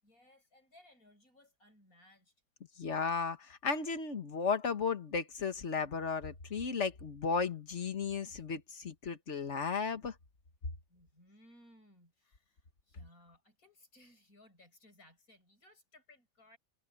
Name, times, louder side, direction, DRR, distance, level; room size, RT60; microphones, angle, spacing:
voice 1, 0.0-2.3 10.9-16.6, left 1 dB, 70° left, 8.1 m, -62 dB
voice 2, 2.8-10.1, left 5 dB, 50° left, 1.8 m, -34 dB
omnidirectional pair, 1.5 m